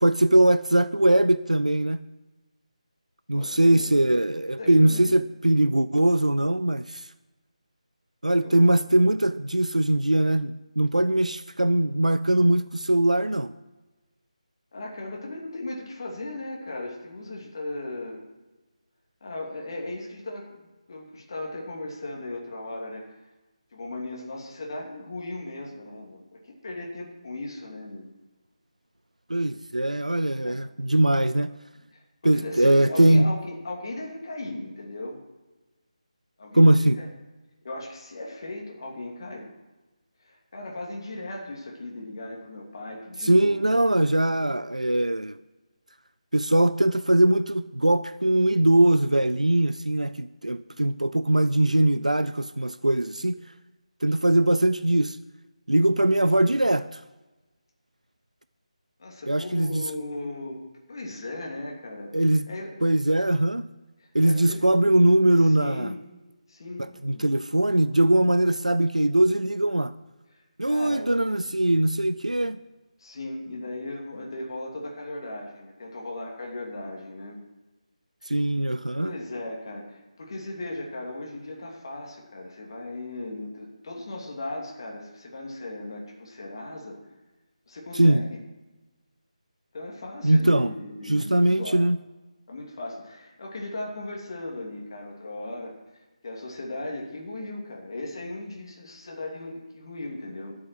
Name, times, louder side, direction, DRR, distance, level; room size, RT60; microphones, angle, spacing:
voice 1, 0.0-2.0 3.3-7.0 8.2-13.5 29.3-31.5 32.2-33.3 36.5-37.0 43.2-45.4 46.3-53.4 54.0-55.2 55.7-57.0 59.3-59.8 62.1-62.4 62.8-63.7 64.1-65.9 66.8-69.9 70.6-72.6 78.3-79.2 87.9-88.2 90.2-90.7 91.1-92.0, right 1 dB, 85° right, 14 dB, 0.5 m, -21 dB
voice 2, 3.3-3.9 4.6-5.1 8.4-8.7 14.7-18.3 19.2-23.1 23.7-26.2 26.6-28.1 30.4-30.6 31.9-32.0 32.3-35.2 36.4-37.1 37.6-39.5 40.2-43.7 59.0-62.7 64.0-64.8 65.4-66.0 66.5-67.2 70.6-71.1 73.0-77.4 79.0-87.0 87.7-88.4 89.7-91.8 92.5-95.7 96.2-100.6, left 2 dB, 40° left, -1 dB, 2.8 m, -37 dB
12.0 x 7.6 x 8.0 m, 1.1 s
figure-of-eight pair, 155°, 4 cm